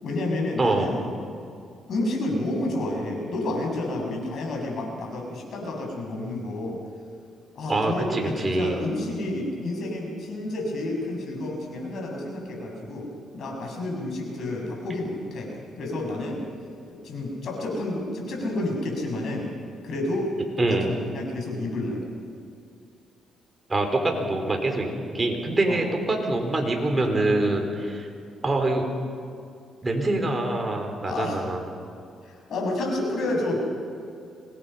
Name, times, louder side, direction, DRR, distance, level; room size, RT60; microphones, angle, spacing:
voice 1, 0.0-1.0 1.9-6.8 7.6-13.1 13.3-15.5 15.8-16.4 16.9-19.5 19.8-20.3 20.7-20.8 21.1-22.0 25.7-25.8 31.0-31.4 32.2-33.6, left 2 dB, 60° left, 0 dB, 7.0 m, -30 dB
voice 2, 0.6-0.9 7.7-8.8 20.6-20.9 23.7-28.1 28.4-28.8 29.8-31.6, right 2 dB, 25° right, 3 dB, 4.3 m, -25 dB
25.5 x 20.0 x 5.8 m, 2.4 s
cardioid pair, 90°, 0 cm